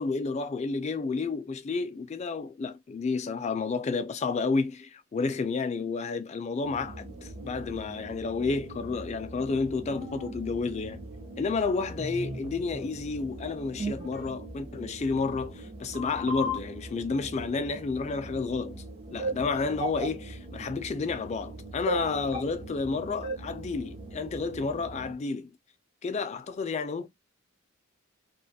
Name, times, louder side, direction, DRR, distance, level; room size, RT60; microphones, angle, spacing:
voice 1, 0.0-11.0 11.4-18.8 19.1-25.5 26.0-27.1, left 4 dB, 30° left, 0.3 m, -31 dB
sound 1, 6.6-25.1, right 1 dB, 30° right, 0.6 m, -39 dB
2.4 x 2.3 x 2.7 m
head